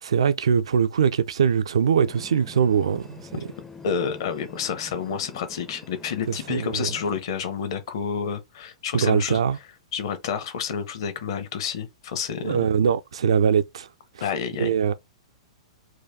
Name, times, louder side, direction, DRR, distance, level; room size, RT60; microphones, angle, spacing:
voice 1, 0.0-3.4 6.3-6.9 8.9-9.6 12.4-13.9 14.1-14.2 14.6-14.9, right 7 dB, 60° right, 0.4 m, -22 dB
sound 1, 2.1-7.2, left 4 dB, 10° left, 0.5 m, -45 dB
voice 2, 3.8-9.4 9.9-12.7 14.2-14.9, left 7 dB, 50° left, 0.9 m, -29 dB
4.7 x 2.2 x 3.4 m
figure-of-eight pair, 105°, 3 cm